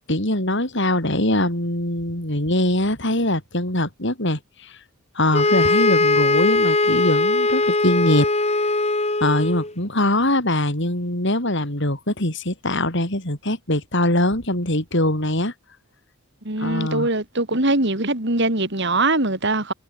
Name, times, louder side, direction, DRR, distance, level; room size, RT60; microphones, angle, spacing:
voice 1, 0.1-4.8 5.1-8.3 9.2-15.5 16.6-17.1, left 1 dB, 55° left, 6.0 m, -22 dB
sound 1, 5.3-9.7, left 2 dB, 30° left, 5.1 m, -20 dB
voice 2, 16.4-19.7, right 2 dB, 55° right, 3.2 m, -22 dB
head